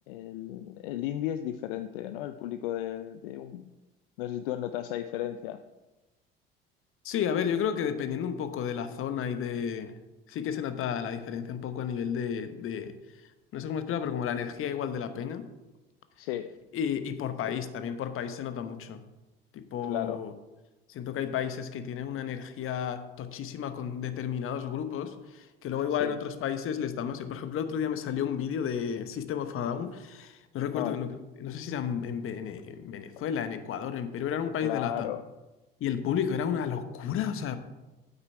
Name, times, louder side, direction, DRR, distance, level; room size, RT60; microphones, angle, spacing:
voice 1, 0.1-3.7 4.2-5.6 16.2-16.5 17.4-17.6 19.8-20.2 26.0-26.2 30.7-31.0 34.6-35.2, left 12 dB, 70° left, 9 dB, 0.5 m, -34 dB
voice 2, 7.0-10.0 10.3-12.9 13.5-15.4 16.7-19.0 19.5-20.3 20.9-31.1 31.4-35.1 35.8-37.6, left 8 dB, 45° left, 10 dB, 1.1 m, -32 dB
9.1 x 8.1 x 4.6 m, 1.1 s
figure-of-eight pair, 60°, 29 cm